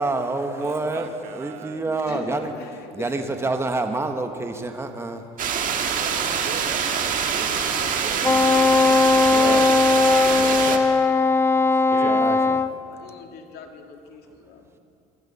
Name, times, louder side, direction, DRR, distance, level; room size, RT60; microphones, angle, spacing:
voice 1, 0.0-2.5 2.9-5.2 8.0-8.8 9.1-9.7 10.3-10.8 12.0-12.6, right 2 dB, 15° right, 6 dB, 1.2 m, -28 dB
voice 2, 0.6-1.8 5.9-8.4 9.1-10.1 11.6-12.3, right 9 dB, 80° right, 8 dB, 1.2 m, -39 dB
voice 3, 2.1-3.3 6.0-6.6 7.5-8.0 10.2-10.7 11.2-11.4 12.9-14.7, left 5 dB, 65° left, 3 dB, 2.1 m, -41 dB
sound 1, 5.4-10.8, right 7 dB, 50° right, 1.6 m, -25 dB
Wind instrument woodwind instrument, 8.2-12.7, left 3 dB, 15° left, 0.4 m, -18 dB
23.0 x 14.5 x 4.1 m, 2.4 s
supercardioid pair, 95°, 18 cm